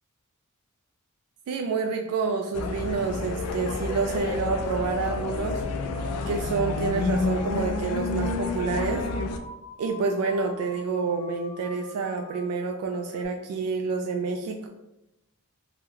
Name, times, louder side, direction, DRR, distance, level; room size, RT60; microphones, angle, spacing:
voice 1, 1.5-5.6 6.3-9.0 9.8-14.7, right 4 dB, 80° right, 4 dB, 0.3 m, -28 dB
sound 1, 2.5-9.4, left 3 dB, 85° left, 0.3 m, -30 dB
sound 2, 3.3-13.3, left 1 dB, 25° right, 1.3 m, -40 dB
2.9 x 2.1 x 3.6 m, 0.92 s
head